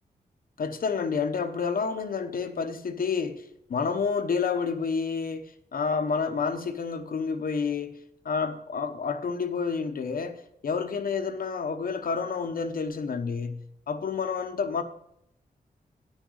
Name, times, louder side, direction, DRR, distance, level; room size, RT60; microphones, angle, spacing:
voice 1, 0.6-8.0 8.2-14.8, left 5 dB, 65° left, 0.9 m, -29 dB
9.0 x 6.4 x 6.4 m
cardioid pair, 80°, 16 cm